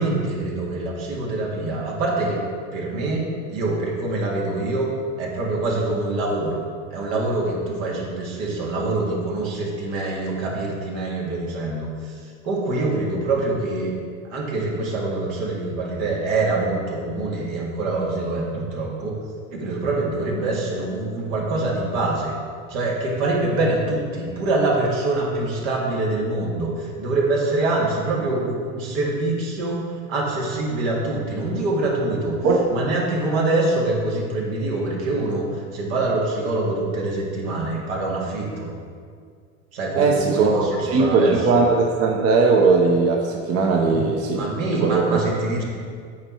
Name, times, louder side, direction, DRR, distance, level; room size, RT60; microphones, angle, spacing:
voice 1, 0.0-2.4 2.7-4.9 5.2-6.6 6.9-13.9 14.3-19.1 19.5-22.3 22.7-29.8 30.1-32.4 32.7-38.7 39.7-41.4 43.9-45.6, right 2 dB, 70° right, -2 dB, 2.0 m, -25 dB
voice 2, 40.0-44.5 44.8-45.2, right 4 dB, 35° right, 1 dB, 0.8 m, -19 dB
8.7 x 4.5 x 4.5 m, 2.1 s
hypercardioid pair, 95°, 41 cm